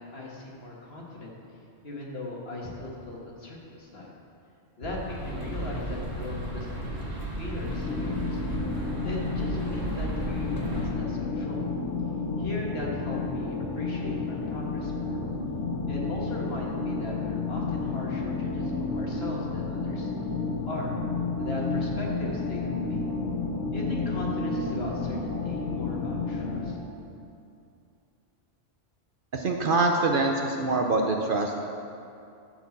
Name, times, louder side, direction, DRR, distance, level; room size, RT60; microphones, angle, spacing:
voice 1, 0.0-1.3 1.8-4.1 4.8-8.4 9.0-11.6 12.4-15.2 15.9-20.1 20.7-20.9 21.4-23.0 23.7-26.8, left 2 dB, 55° left, -3 dB, 1.9 m, -38 dB
sound 1, 4.9-10.9, right 1 dB, 15° right, 1.5 m, -34 dB
sound 2, 7.6-26.7, left 3 dB, 75° left, 1.2 m, -31 dB
voice 2, 29.3-31.6, right 3 dB, 50° right, 2 dB, 0.7 m, -24 dB
12.5 x 4.5 x 7.1 m, 2.6 s
omnidirectional pair, 1.3 m